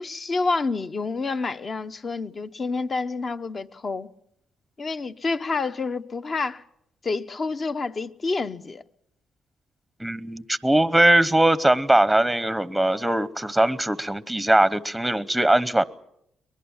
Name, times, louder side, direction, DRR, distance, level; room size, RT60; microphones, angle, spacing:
voice 1, 0.0-4.1 4.8-6.6 7.0-8.8, left 3 dB, 40° left, 0.9 m, -28 dB
voice 2, 10.0-15.8, right 1 dB, 5° right, 0.8 m, -20 dB
23.0 x 20.5 x 7.3 m
cardioid pair, 80°, 0 cm